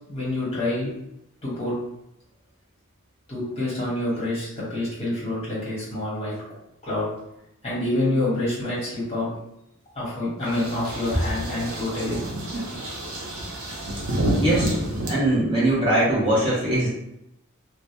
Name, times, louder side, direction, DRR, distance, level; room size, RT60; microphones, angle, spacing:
voice 1, 0.1-0.9 1.4-1.7 3.3-6.3 6.8-7.1 7.6-9.3 9.9-12.2, left 1 dB, 30° left, -7 dB, 1.0 m, -27 dB
sound 1, 10.4-15.1, right 1 dB, 70° right, 0.6 m, -29 dB
voice 2, 14.4-14.7 15.1-16.9, right 1 dB, 25° right, -7 dB, 0.6 m, -21 dB
2.1 x 2.1 x 2.7 m, 0.84 s
head